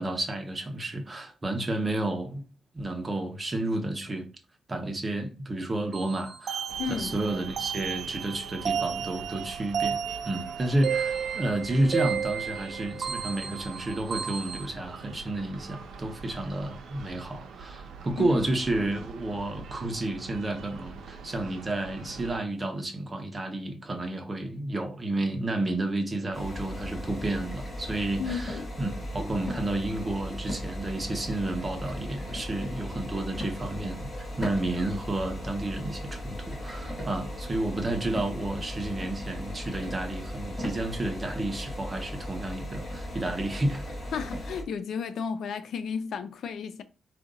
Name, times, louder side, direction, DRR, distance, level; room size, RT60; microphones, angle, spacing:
voice 1, 0.0-2.5 2.7-4.3 4.7-10.0 10.2-44.1, right 1 dB, 20° right, 0.9 m, -31 dB
sound 1, 5.9-14.7, right 7 dB, 55° right, 0.5 m, -33 dB
sound 2, 6.7-22.4, right 5 dB, 80° right, 0.8 m, -45 dB
voice 2, 6.8-7.2 18.2-18.4 28.2-28.7 44.1-46.8, left 6 dB, 65° left, 0.5 m, -33 dB
sound 3, 26.3-44.6, left 1 dB, 20° left, 1.6 m, -37 dB
4.9 x 2.5 x 3.9 m
cardioid pair, 135°, 0 cm